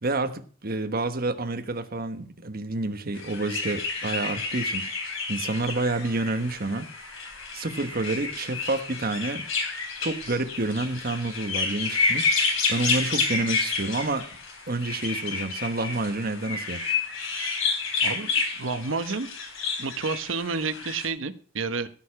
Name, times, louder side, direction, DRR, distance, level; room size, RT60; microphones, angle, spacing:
voice 1, 0.0-4.8 5.3-6.9 7.5-9.4 10.0-12.3 12.7-14.3 14.7-16.9, right 2 dB, 45° right, 8 dB, 1.2 m, -29 dB
sound 1, 3.1-21.1, left 4 dB, 75° left, 4.0 m, -30 dB
voice 2, 18.0-19.3 19.8-21.9, right 4 dB, 70° right, 10 dB, 1.0 m, -30 dB
16.0 x 6.8 x 5.9 m, 0.43 s
head